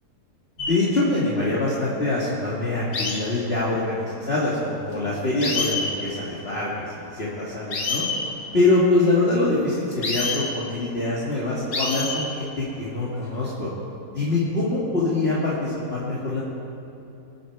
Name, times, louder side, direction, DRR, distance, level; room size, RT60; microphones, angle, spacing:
sound 1, 0.6-0.7 2.9-3.2 4.9-5.0 5.4-5.9 7.7-8.2 9.9-10.5 11.7-12.2 13.1-13.5, left 3 dB, 65° left, 2.3 m, -26 dB
voice 1, 0.6-8.0 8.5-13.7 14.1-16.4, left 2 dB, 40° left, -8 dB, 2.3 m, -24 dB
24.5 x 9.7 x 4.6 m, 2.8 s
omnidirectional pair, 1.6 m